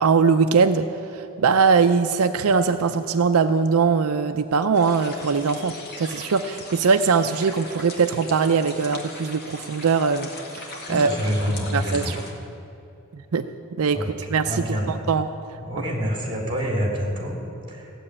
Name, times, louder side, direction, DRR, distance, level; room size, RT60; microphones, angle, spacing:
voice 1, 0.0-10.3 10.5-11.2 11.7-12.1 13.1-13.5 13.8-14.0 14.3-15.3, right 5 dB, 75° right, 8 dB, 0.5 m, -21 dB
sound 1, 4.7-12.3, left 2 dB, 50° left, 2.0 m, -39 dB
voice 2, 10.9-12.2 13.9-14.1 14.4-14.9 15.6-17.9, equal, 25° right, 0 dB, 3.2 m, -27 dB
15.5 x 7.8 x 9.8 m, 2.8 s
head